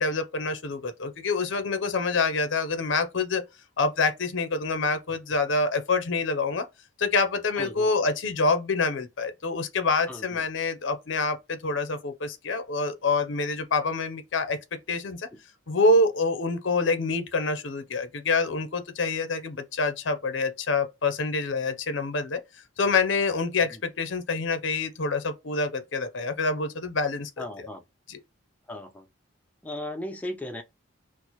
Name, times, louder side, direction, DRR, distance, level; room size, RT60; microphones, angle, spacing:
voice 1, 0.0-3.4 3.8-6.6 7.0-14.6 14.9-15.3 15.7-22.4 22.8-27.7 28.1-28.2, left 3 dB, 60° left, 0.6 m, -26 dB
voice 2, 7.6-7.9 10.1-10.4 23.7-23.8 27.4-27.8 28.7-29.1 29.6-30.6, left 1 dB, 5° left, 0.4 m, -36 dB
4.4 x 2.0 x 2.9 m
head